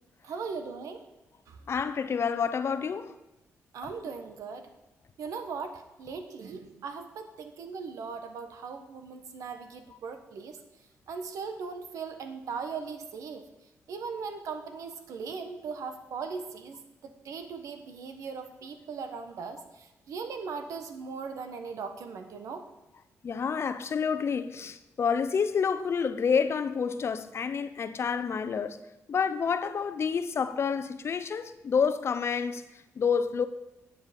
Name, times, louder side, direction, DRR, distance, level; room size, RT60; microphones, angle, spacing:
voice 1, 0.2-1.0 1.5-1.6 3.7-4.7 5.2-10.6 11.1-13.4 13.9-22.6, right 5 dB, 80° right, 1.2 m, -39 dB
voice 2, 1.7-3.1 23.2-28.8 29.1-32.6 33.0-33.5, left 6 dB, 50° left, 0.7 m, -28 dB
9.8 x 8.7 x 5.2 m
cardioid pair, 90°, 6 cm